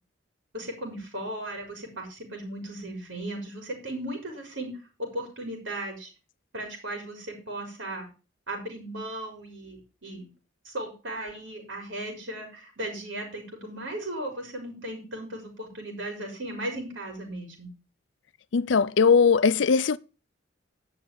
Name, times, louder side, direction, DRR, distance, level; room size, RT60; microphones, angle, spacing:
voice 1, 0.5-4.7 5.1-6.1 6.5-8.1 8.5-10.3 10.6-17.7, right 1 dB, 75° right, 4.5 m, -36 dB
voice 2, 18.5-20.0, left 5 dB, 70° left, 0.5 m, -20 dB
10.5 x 6.0 x 7.0 m
head